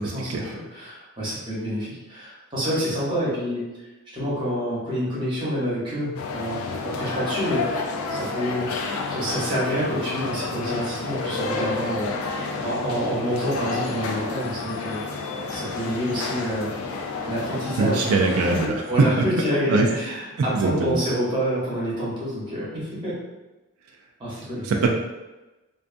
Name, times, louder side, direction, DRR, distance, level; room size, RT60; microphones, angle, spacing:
voice 1, 0.0-3.6 4.1-8.7 9.1-15.2 15.5-16.7 17.2-18.1 18.9-23.1 24.2-24.7, equal, 20° right, -8 dB, 0.9 m, -27 dB
sound 1, 6.2-18.7, left 4 dB, 80° left, 0.4 m, -30 dB
voice 2, 17.8-18.9 19.2-19.3 19.7-19.9 20.5-21.0 24.6-24.9, right 3 dB, 85° right, 1 dB, 0.3 m, -22 dB
2.5 x 2.3 x 2.5 m, 1.1 s
head